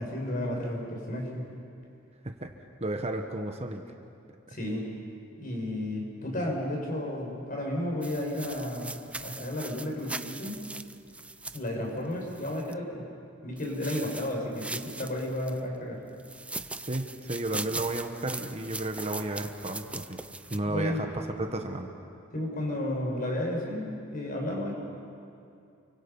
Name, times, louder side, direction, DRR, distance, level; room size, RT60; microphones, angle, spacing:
voice 1, 0.0-1.5 4.5-4.9 5.4-10.6 11.5-13.1 13.4-16.0 20.7-21.0 22.3-24.7, left 1 dB, 45° left, 0 dB, 5.7 m, -32 dB
voice 2, 2.8-3.8 4.5-4.6 16.9-20.2 20.5-21.9, right 2 dB, 35° right, 4 dB, 1.3 m, -33 dB
Running Footsteps on Grass, 8.0-12.7 13.6-15.6 16.2-20.6, right 2 dB, 5° right, 0.5 m, -40 dB
29.5 x 24.5 x 5.6 m, 2.6 s
head